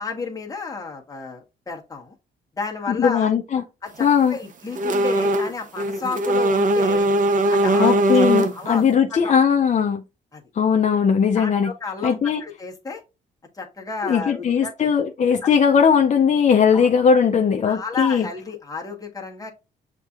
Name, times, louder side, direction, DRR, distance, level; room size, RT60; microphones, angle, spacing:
voice 1, 0.0-2.1 2.6-3.3 3.8-7.1 7.5-8.8 9.1-9.4 10.3-10.4 11.3-13.0 13.5-14.9 15.4-15.5 16.7-16.9 17.6-19.5, left 4 dB, 15° left, 1.2 m, -32 dB
voice 2, 2.9-3.6 4.0-4.4 7.8-10.0 10.5-11.7 12.0-12.4 14.0-18.3, left 6 dB, 35° left, 0.5 m, -19 dB
sound 1, 4.7-5.5 5.8-8.7, right 1 dB, 40° right, 0.7 m, -20 dB
6.5 x 2.7 x 2.4 m
cardioid pair, 90°, 20 cm